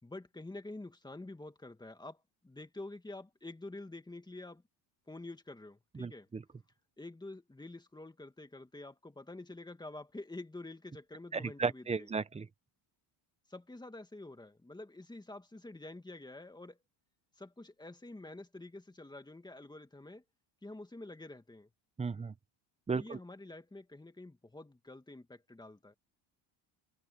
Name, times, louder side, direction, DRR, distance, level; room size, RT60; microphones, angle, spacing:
voice 1, 0.0-2.2 2.4-4.6 5.1-6.3 7.0-12.1 13.5-16.8 17.4-20.2 20.6-21.7 22.9-26.0, left 2 dB, 10° left, 2.2 m, -48 dB
voice 2, 6.0-6.4 11.3-12.5 22.0-22.3 22.9-23.2, right 5 dB, 15° right, 0.7 m, -35 dB
cardioid pair, 120°, 47 cm